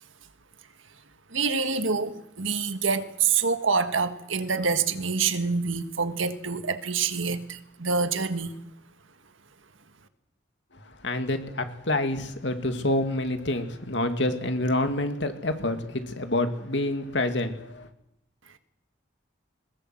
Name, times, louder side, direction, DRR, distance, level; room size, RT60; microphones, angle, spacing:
voice 1, 1.3-8.6, right 5 dB, 80° right, 1.7 m, -26 dB
voice 2, 11.0-17.9, left 1 dB, 65° left, 2.4 m, -27 dB
21.5 x 20.5 x 7.7 m
head